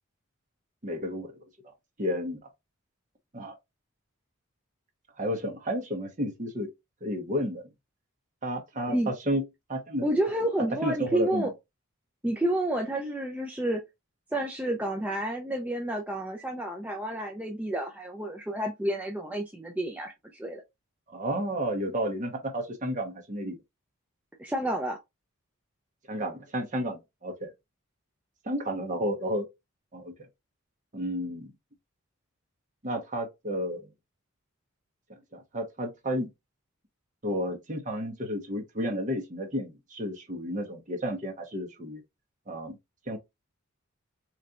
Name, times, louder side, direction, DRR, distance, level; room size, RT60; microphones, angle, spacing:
voice 1, 0.8-1.3 2.0-2.4 3.3-3.5 5.2-6.7 7.0-7.6 8.4-10.1 10.8-11.5 21.1-23.6 26.1-27.5 28.4-29.5 29.9-30.1 30.9-31.5 32.8-33.9 35.3-36.3 37.2-42.0 42.5-42.8 43.1-43.2, equal, 35° right, 1.0 m, -32 dB
voice 2, 10.0-11.5 12.2-13.8 14.3-20.6 24.4-25.0, right 1 dB, 5° right, 0.4 m, -30 dB
4.0 x 3.2 x 2.4 m
head